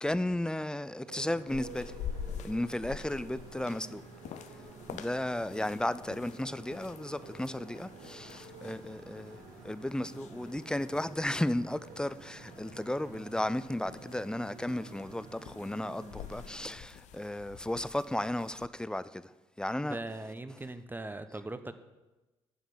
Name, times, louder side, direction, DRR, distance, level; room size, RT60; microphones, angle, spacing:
voice 1, 0.0-2.0 2.4-4.0 4.9-19.3 19.6-20.0, left 1 dB, 5° left, 0.5 m, -34 dB
Motorcycle, 1.0-16.7, right 3 dB, 70° right, 2.0 m, -50 dB
sound 1, 1.5-18.7, left 8 dB, 60° left, 0.6 m, -48 dB
voice 2, 19.8-21.7, right 2 dB, 15° right, 1.0 m, -40 dB
9.1 x 7.3 x 8.6 m
hypercardioid pair, 45°, 14 cm